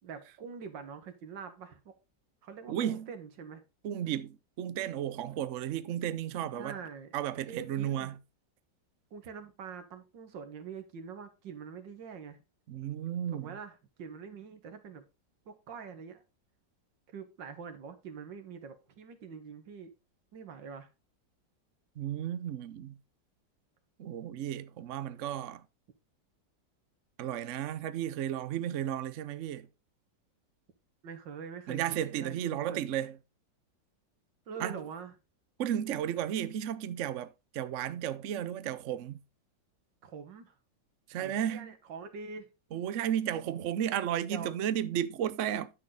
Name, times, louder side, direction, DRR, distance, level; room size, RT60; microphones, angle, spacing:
voice 1, 0.0-1.9 2.4-3.6 6.6-7.2 7.5-8.2 9.1-12.4 13.3-15.0 15.5-16.2 17.1-19.9 20.3-20.9 31.0-32.8 34.5-35.1 40.0-40.5 41.2-42.5 44.3-44.6, right 6 dB, 80° right, 2.1 m, -44 dB
voice 2, 2.7-3.1 3.8-6.8 7.1-8.2 12.7-13.5 22.0-23.0 24.0-25.6 27.2-29.7 31.7-33.2 34.6-34.8 35.6-39.2 41.1-41.7 42.7-45.7, right 10 dB, 60° right, 0.8 m, -33 dB
10.5 x 6.3 x 3.8 m
omnidirectional pair, 2.0 m